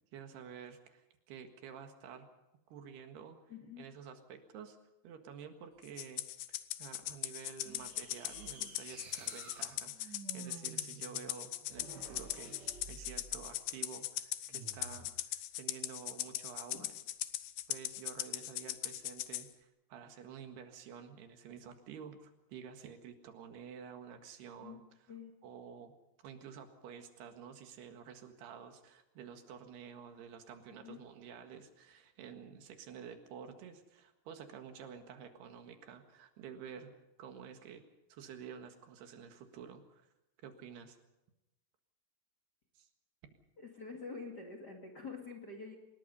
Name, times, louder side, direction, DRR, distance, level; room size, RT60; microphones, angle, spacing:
voice 1, 0.1-2.3 2.7-3.4 3.8-4.8 5.0-6.3 6.8-16.9 17.7-24.8 25.4-25.9 26.2-36.9 37.2-37.8 38.1-40.1 40.4-41.0 42.8-42.9, right 7 dB, 75° right, 6 dB, 3.7 m, -50 dB
voice 2, 3.5-3.9 16.7-16.9 24.6-25.3 30.7-31.0 43.6-45.8, left 4 dB, 30° left, 1 dB, 2.0 m, -47 dB
Rattle (instrument), 6.0-19.5, left 15 dB, 85° left, 3.0 m, -40 dB
sound 1, 7.6-13.6 14.5-15.1, right 5 dB, 50° right, 1.2 m, -52 dB
25.5 x 21.0 x 5.5 m, 0.95 s
omnidirectional pair, 4.8 m